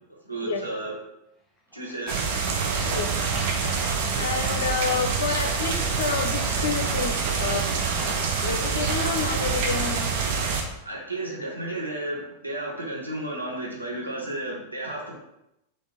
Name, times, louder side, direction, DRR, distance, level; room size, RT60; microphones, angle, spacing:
voice 1, 0.2-0.9 1.7-2.4 2.9-3.0 10.8-15.2, right 1 dB, 85° right, -3 dB, 0.9 m, -33 dB
sound 1, 1.6-5.5 5.8-7.2 8.0-8.5, equal, 10° left, 0.8 m, -44 dB
sound 2, 2.1-10.6, right 5 dB, 50° right, 0.6 m, -26 dB
voice 2, 4.2-7.7 8.4-10.1, left 5 dB, 65° left, 5 dB, 0.5 m, -29 dB
4.0 x 2.5 x 3.5 m, 0.84 s
figure-of-eight pair, 90°, 0 cm